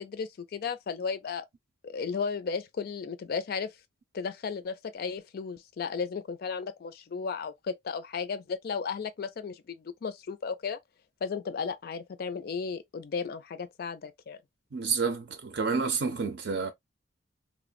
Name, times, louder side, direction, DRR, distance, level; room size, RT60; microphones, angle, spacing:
voice 1, 0.0-1.5 1.8-3.7 4.1-10.8 11.2-14.4, left 5 dB, 55° left, 0.4 m, -34 dB
voice 2, 14.7-16.7, right 5 dB, 65° right, 0.5 m, -29 dB
3.2 x 2.1 x 2.3 m
head